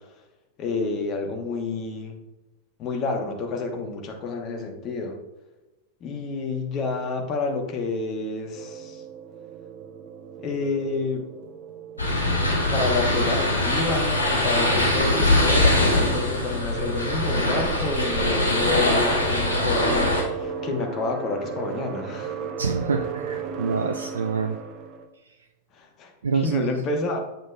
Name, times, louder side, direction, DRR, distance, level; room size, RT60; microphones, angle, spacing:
voice 1, 0.6-2.2 2.8-5.2 6.0-9.0 10.4-11.3 12.7-22.4 25.8-27.2, left 3 dB, 35° left, 3 dB, 1.1 m, -29 dB
sound 1, 8.5-25.1, right 7 dB, 35° right, 0.7 m, -36 dB
sound 2, 12.0-20.2, left 1 dB, 80° left, 2.3 m, -22 dB
voice 2, 22.6-24.6 26.2-26.7, right 5 dB, 70° right, 6 dB, 0.4 m, -26 dB
7.9 x 7.3 x 2.4 m, 1.1 s
figure-of-eight pair, 90°, 0 cm